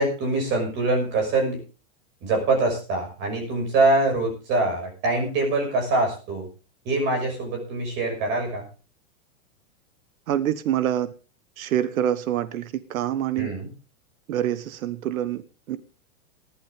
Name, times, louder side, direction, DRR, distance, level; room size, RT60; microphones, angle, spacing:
voice 1, 0.0-1.6 2.2-6.5 6.8-8.7 13.4-13.7, right 2 dB, 25° right, 4 dB, 6.0 m, -24 dB
voice 2, 10.3-11.1 11.6-13.5 14.3-15.4 15.7-15.8, right 11 dB, 80° right, 13 dB, 1.3 m, -26 dB
20.0 x 11.5 x 3.6 m, 0.34 s
supercardioid pair, 175°, 41 cm